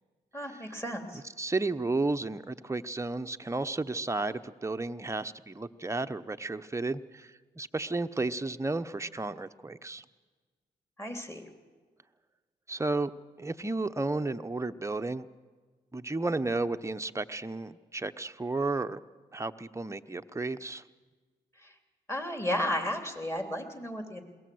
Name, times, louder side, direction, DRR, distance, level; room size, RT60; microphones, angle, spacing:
voice 1, 0.3-1.2 11.0-11.4 21.6-21.7 22.1-24.2, left 1 dB, 15° left, 4 dB, 3.4 m, -33 dB
voice 2, 1.4-7.3 7.6-10.0 12.7-13.1 13.4-15.3 15.9-19.0 19.3-20.8, right 2 dB, 15° right, 8 dB, 0.9 m, -32 dB
21.5 x 18.0 x 7.9 m, 1.4 s
supercardioid pair, 50°, 18 cm